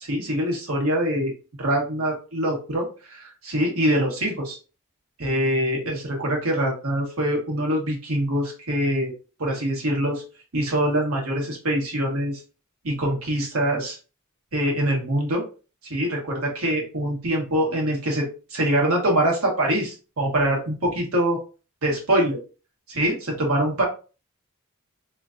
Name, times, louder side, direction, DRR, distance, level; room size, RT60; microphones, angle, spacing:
voice 1, 0.0-1.3 1.6-4.6 5.2-9.1 9.4-10.2 10.5-12.4 12.8-14.0 14.5-15.4 15.8-21.4 21.8-22.4 22.9-23.8, right 1 dB, 80° right, 0 dB, 1.3 m, -24 dB
3.7 x 3.1 x 2.5 m, 0.34 s
head